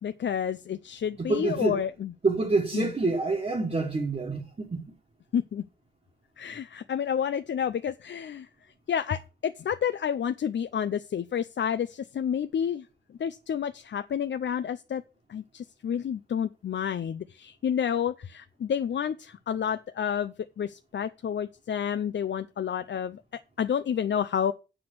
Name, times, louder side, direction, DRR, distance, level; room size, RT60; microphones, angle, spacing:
voice 1, 0.0-2.1 2.7-2.9 5.3-5.6 6.4-8.5 8.9-12.9 13.2-15.0 15.3-23.2 23.6-24.5, left 8 dB, 80° left, 0.5 m, -30 dB
voice 2, 1.2-1.8 2.2-4.9, right 3 dB, 35° right, 1.4 m, -27 dB
7.7 x 6.0 x 6.2 m
wide cardioid pair, 130°, 19 cm